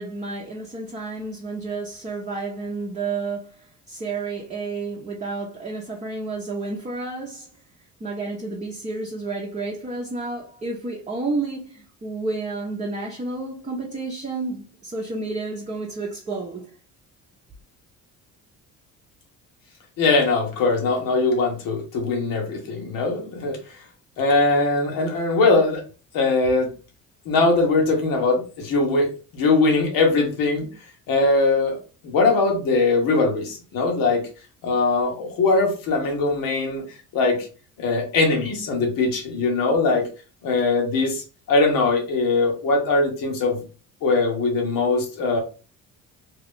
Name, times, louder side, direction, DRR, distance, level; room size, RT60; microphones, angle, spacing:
voice 1, 0.0-7.5 8.0-16.7, right 3 dB, 20° right, 0.7 m, -31 dB
voice 2, 20.0-23.6 24.2-25.8 26.1-26.7 27.2-29.1 29.3-30.7 31.1-34.3 34.6-36.8 37.1-37.5 37.8-40.0 40.4-41.2 41.5-43.6 44.0-45.4, left 3 dB, 80° left, 1.3 m, -21 dB
2.9 x 2.4 x 3.6 m
cardioid pair, 95°, 33 cm